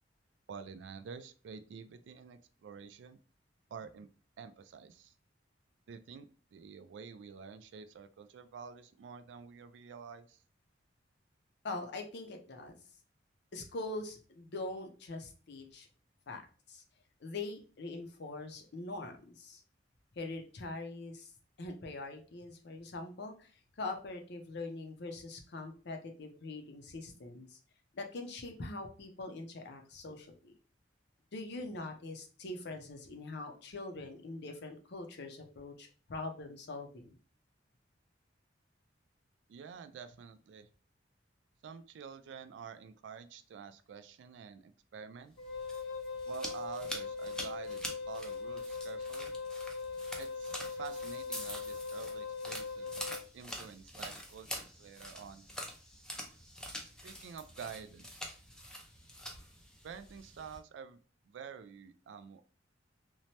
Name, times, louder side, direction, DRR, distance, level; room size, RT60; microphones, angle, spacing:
voice 1, 0.5-3.2 3.7-4.1 4.4-5.1 5.9-10.4 39.5-40.7 41.6-45.3 46.3-49.3 50.2-52.9 53.3-55.5 56.8-58.3 59.8-61.0 61.2-62.4, right 6 dB, 70° right, 11 dB, 0.3 m, -48 dB
voice 2, 11.6-12.8 13.5-15.9 16.3-16.4 16.7-16.8 17.2-19.6 20.2-21.3 21.6-23.5 23.8-27.6 27.9-30.5 31.3-37.2, left 2 dB, 65° left, 4 dB, 0.6 m, -43 dB
Wind instrument woodwind instrument, 45.4-53.2, left 4 dB, 85° left, 1.1 m, -40 dB
sound 1, 45.4-60.6, equal, 5° left, 0.4 m, -46 dB
3.1 x 2.1 x 2.8 m, 0.38 s
head